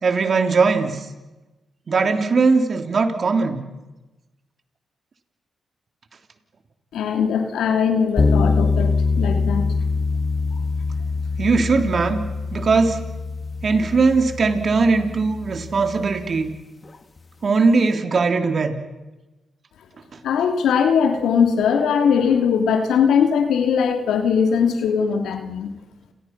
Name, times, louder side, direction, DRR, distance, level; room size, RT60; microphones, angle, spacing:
voice 1, 0.0-1.0 1.9-3.6 11.4-13.0 13.6-16.5 17.4-18.7, right 4 dB, 55° right, 6 dB, 3.4 m, -19 dB
voice 2, 6.9-9.7 20.2-25.7, left 7 dB, 85° left, 5 dB, 2.6 m, -20 dB
sound 1, 8.2-16.3, left 4 dB, 40° left, 2.5 m, -24 dB
29.5 x 29.0 x 6.0 m, 1.1 s
supercardioid pair, 55°, 0 cm